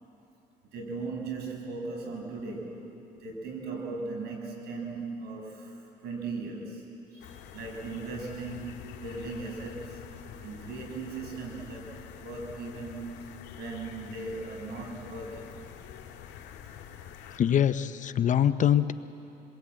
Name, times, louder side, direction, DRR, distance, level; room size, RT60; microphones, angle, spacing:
voice 1, 0.7-2.8 3.2-10.0 10.4-15.9, right 3 dB, 75° right, 1 dB, 6.5 m, -38 dB
sound 1, 7.2-17.4, left 9 dB, 85° left, 2.3 m, -46 dB
voice 2, 17.4-18.9, left 9 dB, 50° left, 11 dB, 0.9 m, -23 dB
27.0 x 21.5 x 8.9 m, 3.0 s
cardioid pair, 110°, 17 cm